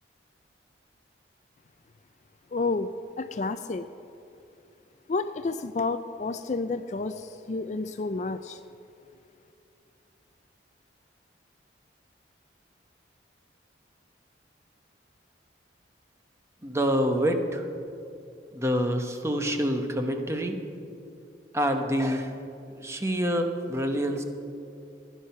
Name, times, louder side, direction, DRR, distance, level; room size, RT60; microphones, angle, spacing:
voice 1, 2.5-2.9 3.2-3.9 5.1-8.6, left 3 dB, 40° left, 10 dB, 0.4 m, -30 dB
voice 2, 16.6-17.7 18.5-20.6 21.5-22.4 22.7-24.2, equal, 15° right, 5 dB, 1.0 m, -27 dB
16.0 x 10.5 x 5.6 m, 2.6 s
head